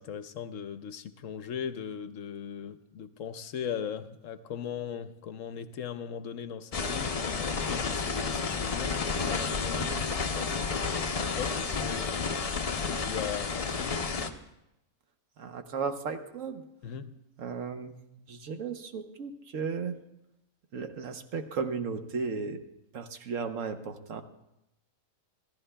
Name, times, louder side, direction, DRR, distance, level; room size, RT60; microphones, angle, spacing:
voice 1, 0.0-9.9 10.3-14.0 16.8-17.2, left 8 dB, 70° left, 11 dB, 1.0 m, -39 dB
sound 1, 6.7-14.3, left 5 dB, 40° left, 0.5 m, -31 dB
voice 2, 9.8-10.1 15.4-16.6 17.4-18.0 18.3-20.0 20.7-22.6 22.9-24.2, right 5 dB, 65° right, 7 dB, 1.2 m, -35 dB
27.0 x 14.0 x 2.2 m, 0.86 s
omnidirectional pair, 1.5 m